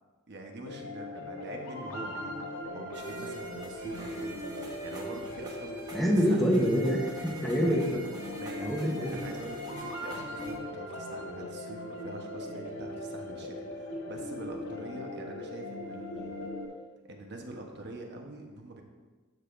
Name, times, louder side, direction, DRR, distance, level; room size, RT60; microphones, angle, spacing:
voice 1, 0.3-4.4 4.8-6.6 7.6-7.8 8.3-16.5 17.0-18.8, right 1 dB, 55° right, 2 dB, 1.0 m, -44 dB
sound 1, 0.7-16.7, left 1 dB, 80° left, 1.1 m, -39 dB
sound 2, 2.9-10.5, right 2 dB, 20° right, 1.4 m, -47 dB
voice 2, 5.9-8.0 8.6-9.2, equal, ahead, -1 dB, 1.0 m, -26 dB
12.0 x 6.5 x 2.6 m, 1.3 s
head